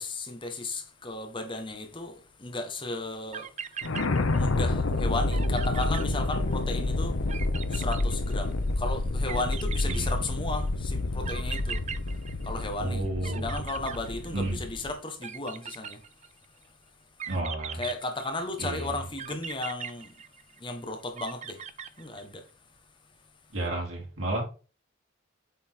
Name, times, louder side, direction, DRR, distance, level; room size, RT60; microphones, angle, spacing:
voice 1, 0.0-16.1 16.6-16.8 17.7-21.7 21.9-22.5, left 2 dB, 25° left, 1.2 m, -35 dB
sound 1, 3.1-3.2 3.3-4.7 5.0-5.1 5.3-6.7 7.3-8.7 9.3-10.6 11.2-12.9 13.2-14.6 15.2-16.4 17.2-18.6 19.2-20.7 21.2-22.4, right 8 dB, 35° right, 0.5 m, -40 dB
sound 2, 3.8-14.9, left 2 dB, 85° left, 0.8 m, -29 dB
voice 2, 12.8-13.6 14.3-14.6 17.3-17.8 18.6-18.9 23.5-24.4, right 2 dB, 90° right, 3.8 m, -31 dB
8.3 x 4.0 x 4.4 m
head